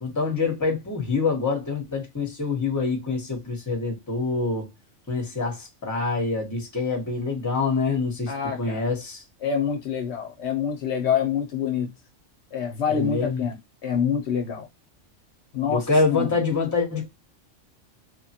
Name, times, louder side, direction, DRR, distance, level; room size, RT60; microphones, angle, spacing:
voice 1, 0.0-4.7 5.1-8.3 8.6-9.2 12.9-13.4 15.7-17.1, left 4 dB, 15° left, 0.8 m, -25 dB
voice 2, 8.3-8.8 9.4-11.9 12.5-13.6 13.8-14.7 15.5-16.3, left 7 dB, 70° left, 0.8 m, -26 dB
3.1 x 2.1 x 2.7 m
omnidirectional pair, 1.3 m